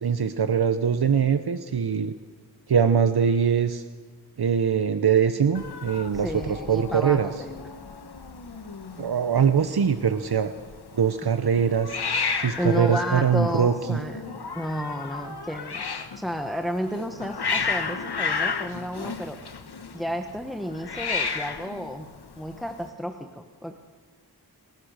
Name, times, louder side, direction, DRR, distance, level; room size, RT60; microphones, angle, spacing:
voice 1, 0.0-2.1 2.7-3.8 4.4-7.3 9.0-10.5 10.9-12.0 12.4-14.0, right 7 dB, 75° right, 9 dB, 0.9 m, -22 dB
Hiss, 5.5-22.9, left 5 dB, 85° left, 1.4 m, -33 dB
voice 2, 6.1-7.5 12.6-14.2 14.5-15.8 16.2-19.4 19.9-22.1 22.4-23.7, equal, ahead, 4 dB, 1.2 m, -31 dB
28.0 x 16.5 x 6.5 m, 1.4 s
wide cardioid pair, 85°, 38 cm